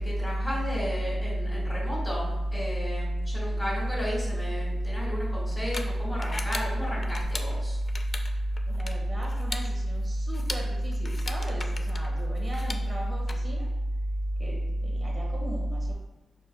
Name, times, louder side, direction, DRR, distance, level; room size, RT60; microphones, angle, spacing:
voice 1, 0.0-7.8, equal, 5° left, -9 dB, 1.5 m, -29 dB
sound 1, 4.6-13.3, left 3 dB, 30° left, 0.4 m, -40 dB
voice 2, 8.7-13.7 14.4-15.9, right 1 dB, 30° right, -3 dB, 1.1 m, -40 dB
5.3 x 4.4 x 2.2 m, 1.1 s
wide cardioid pair, 110°, 0 cm